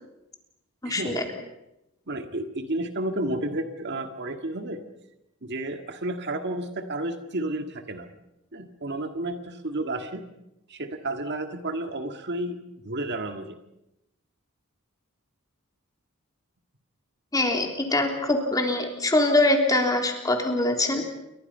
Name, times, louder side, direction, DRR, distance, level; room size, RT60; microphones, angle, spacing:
voice 1, 0.8-1.2 17.3-21.0, left 2 dB, 15° left, 3 dB, 3.5 m, -23 dB
voice 2, 2.1-4.8 5.4-8.1 8.5-10.2 10.7-12.6 12.8-13.6, right 1 dB, 55° right, 6 dB, 2.0 m, -31 dB
29.0 x 23.5 x 5.7 m, 0.89 s
head